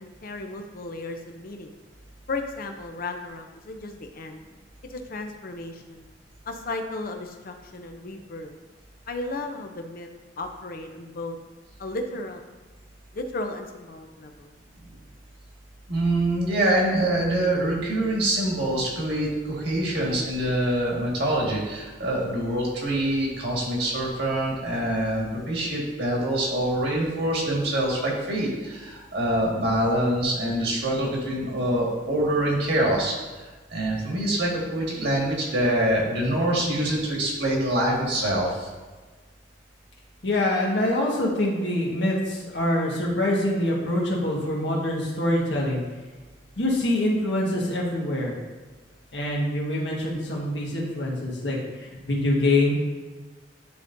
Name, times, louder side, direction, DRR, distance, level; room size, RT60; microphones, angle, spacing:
voice 1, 0.0-1.7 2.3-4.4 4.9-6.0 6.5-8.5 9.1-10.1 10.4-11.4 11.8-12.4 13.1-14.5, left 2 dB, 55° left, 5 dB, 0.6 m, -35 dB
voice 2, 15.9-33.1 33.7-38.7, right 1 dB, 70° right, -3 dB, 1.8 m, -25 dB
voice 3, 40.2-45.8 46.6-48.3 49.1-52.7, left 1 dB, 85° left, -3 dB, 1.5 m, -25 dB
10.0 x 3.6 x 2.6 m, 1.3 s
head